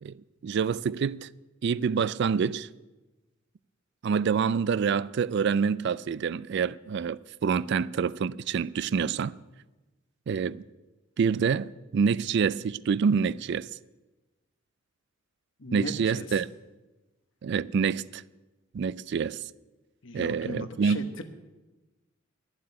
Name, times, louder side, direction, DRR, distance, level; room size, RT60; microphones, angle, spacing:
voice 1, 0.0-1.3 1.6-2.7 4.0-9.3 10.3-10.6 11.2-13.7 15.7-16.5 17.4-18.2 18.7-19.4 20.1-21.1, right 6 dB, 55° right, 0.3 m, -27 dB
voice 2, 15.6-16.4 20.0-21.2, left 2 dB, 65° left, 1.2 m, -38 dB
11.5 x 7.7 x 9.7 m
head